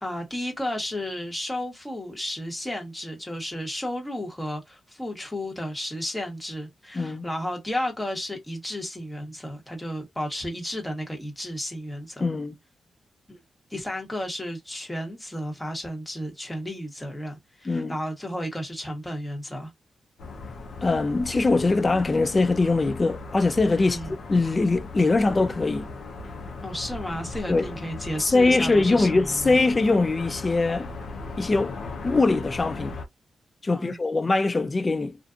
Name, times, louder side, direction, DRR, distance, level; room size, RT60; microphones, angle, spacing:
voice 1, 0.0-12.3 13.3-13.4 13.7-19.7 23.8-24.1 26.6-29.6 33.7-34.0, left 1 dB, 10° left, 1.2 m, -33 dB
voice 2, 6.9-7.3 12.2-12.6 17.7-17.9 20.8-24.0 24.3-25.9 27.5-27.7 28.2-30.9 31.4-31.7 32.0-33.0 33.6-35.2, left 3 dB, 30° left, 0.4 m, -22 dB
sound 1, 20.2-33.0, left 3 dB, 75° left, 0.9 m, -38 dB
2.5 x 2.5 x 2.4 m
cardioid pair, 85°, 0 cm